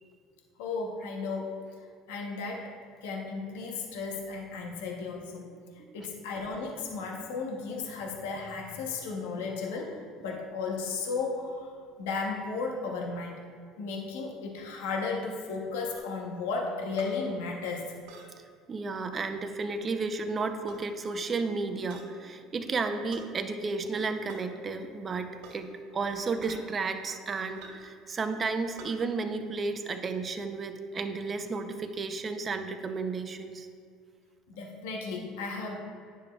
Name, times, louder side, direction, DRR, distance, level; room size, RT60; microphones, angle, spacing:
voice 1, 0.6-1.6 2.1-2.7 3.0-5.5 5.9-13.4 13.8-17.9 34.5-35.8, left 4 dB, 85° left, 0 dB, 1.0 m, -34 dB
sound 1, 15.9-16.1 17.0-17.1 18.1-18.3 19.1-19.3 20.5-20.8 21.9-22.1 23.1-23.3 24.3-24.4 25.4-25.7 26.4-26.6 27.5-27.9 28.8-28.9, right 3 dB, 80° right, 1.9 m, -47 dB
voice 2, 18.7-25.7 25.9-33.7, right 4 dB, 35° right, 7 dB, 0.6 m, -33 dB
10.0 x 6.9 x 2.4 m, 2.2 s
supercardioid pair, 90°, 0 cm